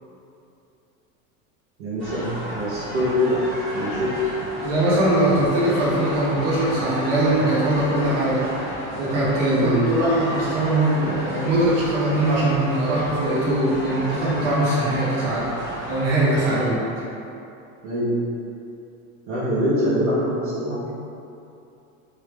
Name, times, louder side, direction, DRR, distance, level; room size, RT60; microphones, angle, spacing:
voice 1, 1.8-3.4 3.7-4.2 9.5-9.8 16.6-16.8 17.8-18.2 19.3-20.9, equal, 55° right, -11 dB, 1.0 m, -24 dB
sound 1, 2.0-16.6, equal, ahead, 1.4 m, -33 dB
voice 2, 4.6-8.5 8.9-15.5 15.9-16.7, right 1 dB, 35° right, -9 dB, 1.2 m, -21 dB
3.4 x 2.6 x 3.4 m, 2.7 s
supercardioid pair, 145°, 42 cm